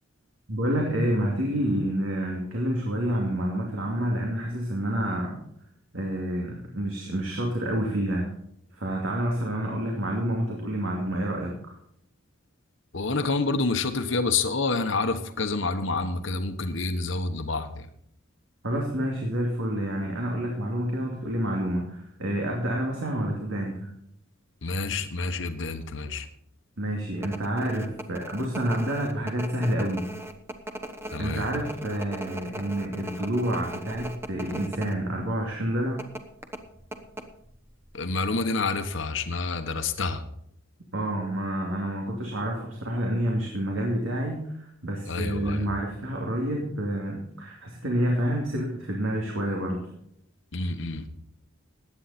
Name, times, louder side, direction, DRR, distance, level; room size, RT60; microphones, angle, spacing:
voice 1, 0.5-5.4 5.9-8.3 8.7-11.7 18.6-23.9 26.8-30.1 31.2-36.0 40.9-49.9, right 1 dB, 70° right, -1 dB, 2.6 m, -28 dB
voice 2, 12.9-17.9 24.6-26.3 31.1-31.5 37.9-40.3 45.1-45.7 50.5-51.1, left 3 dB, 65° left, 8 dB, 1.2 m, -28 dB
sound 1, 27.2-35.0 35.3-35.4 36.0-37.7 37.9-38.0, right 1 dB, 10° right, 1.0 m, -38 dB
15.5 x 10.0 x 4.3 m, 0.72 s
head